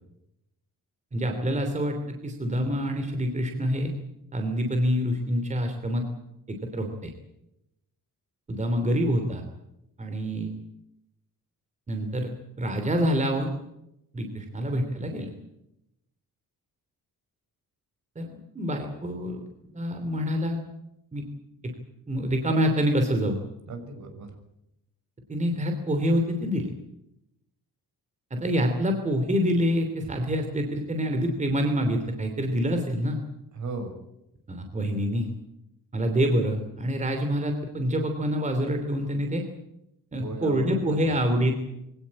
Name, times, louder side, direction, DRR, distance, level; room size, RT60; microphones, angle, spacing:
voice 1, 1.1-3.9 4.3-6.0 6.5-7.1 8.5-9.4 10.0-10.5 11.9-12.3 12.6-13.5 14.1-15.3 18.1-18.3 18.5-20.6 21.1-21.3 21.6-21.7 22.1-23.4 25.3-26.7 28.3-33.2 34.5-35.3 35.9-39.4 40.1-41.5, equal, 20° right, 5 dB, 2.9 m, -26 dB
voice 2, 23.7-24.3 30.0-30.1 33.5-33.9 40.2-41.2, right 3 dB, 55° right, 7 dB, 6.1 m, -36 dB
24.0 x 17.0 x 8.8 m, 0.85 s
cardioid pair, 165°, 35 cm